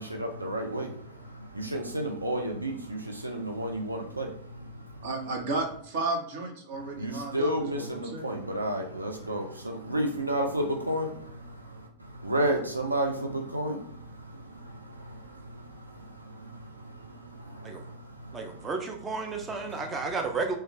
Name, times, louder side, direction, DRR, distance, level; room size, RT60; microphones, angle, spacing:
voice 1, 0.0-5.1 6.7-18.7 19.7-19.8, right 1 dB, 85° right, 0.4 m, -33 dB
voice 2, 5.0-8.4, right 2 dB, 55° right, 0.8 m, -33 dB
voice 3, 18.3-20.6, right 4 dB, 20° right, 0.4 m, -32 dB
3.1 x 2.2 x 3.4 m
figure-of-eight pair, 90°, 0 cm